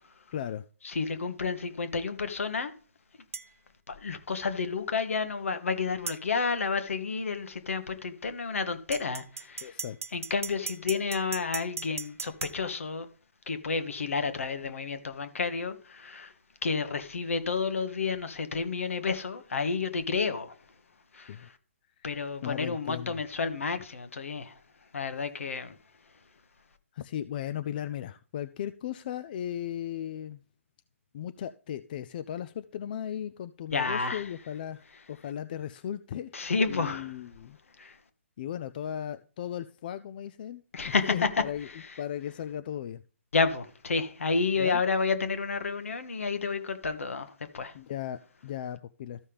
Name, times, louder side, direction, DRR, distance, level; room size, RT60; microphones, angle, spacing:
voice 1, 0.3-0.6 9.6-10.0 21.3-21.5 22.4-23.2 26.9-30.4 31.1-36.3 36.7-37.6 38.4-41.7 42.0-43.0 44.6-44.8 47.7-49.2, left 10 dB, 40° left, 0.4 m, -36 dB
voice 2, 0.8-2.7 3.9-9.8 10.1-13.1 13.5-16.3 16.6-20.6 21.1-21.6 22.0-24.6 24.9-25.8 33.7-34.3 36.3-37.2 37.8-38.0 40.7-42.0 43.3-47.8, left 4 dB, 70° left, 1.1 m, -30 dB
sound 1, 3.3-3.5 6.1-6.2 8.9-12.6, right 5 dB, 80° right, 0.5 m, -37 dB
14.0 x 5.5 x 3.4 m
hypercardioid pair, 140°, 7 cm